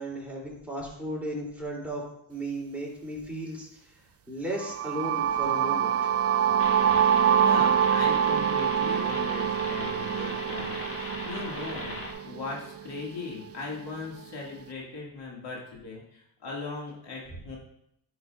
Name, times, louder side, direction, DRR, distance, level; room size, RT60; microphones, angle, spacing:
voice 1, 0.0-3.9 4.3-6.1, right 1 dB, 5° right, -4 dB, 3.0 m, -35 dB
sound 1, 4.6-12.5, right 9 dB, 35° right, 0.4 m, -25 dB
sound 2, 6.6-12.1, left 1 dB, 30° left, 1.9 m, -38 dB
voice 2, 7.3-12.0 12.2-17.6, left 3 dB, 60° left, -3 dB, 2.2 m, -38 dB
10.5 x 6.3 x 2.4 m, 0.75 s
cardioid pair, 80°, 45 cm